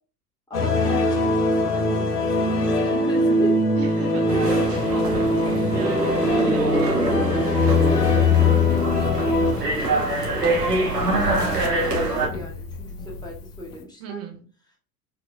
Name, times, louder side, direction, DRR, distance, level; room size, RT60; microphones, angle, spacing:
sound 1, 0.5-9.5, left 2 dB, 80° left, 1.0 m, -21 dB
voice 1, 0.5-3.6 7.8-10.1 10.8-14.2, left 1 dB, 10° left, -1 dB, 1.7 m, -36 dB
voice 2, 3.8-4.6 4.9-8.6 14.0-14.4, right 5 dB, 30° right, 5 dB, 1.1 m, -37 dB
sound 2, 4.3-12.3, right 2 dB, 90° right, 1.1 m, -25 dB
sound 3, 7.6-13.8, left 4 dB, 55° left, 1.0 m, -37 dB
4.5 x 3.8 x 2.3 m, 0.39 s
figure-of-eight pair, 75°, 46 cm